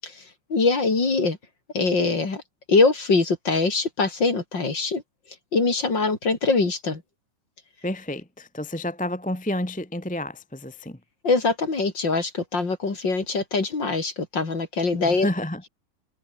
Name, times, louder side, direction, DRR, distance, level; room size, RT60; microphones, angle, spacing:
voice 1, 0.5-1.4 1.7-2.4 2.7-5.0 5.5-7.0 11.2-15.3, left 3 dB, 35° left, 4.0 m, -23 dB
voice 2, 7.8-11.0 15.0-15.6, left 1 dB, 5° left, 1.6 m, -30 dB
omnidirectional pair, 3.6 m